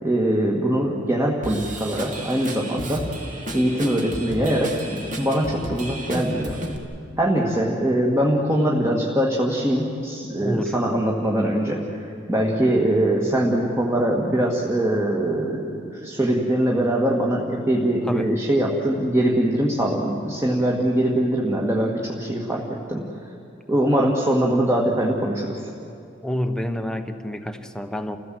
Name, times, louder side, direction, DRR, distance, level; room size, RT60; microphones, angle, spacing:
voice 1, 0.0-3.1 3.5-6.6 7.2-23.0 23.7-25.5, right 1 dB, 15° right, -3 dB, 2.0 m, -22 dB
Drum kit / Drum, 1.4-6.8, right 1 dB, 45° right, 2.4 m, -33 dB
voice 2, 10.4-10.7 18.1-18.3 26.2-28.2, equal, 5° left, 6 dB, 1.1 m, -28 dB
30.0 x 16.0 x 7.8 m, 2.7 s
head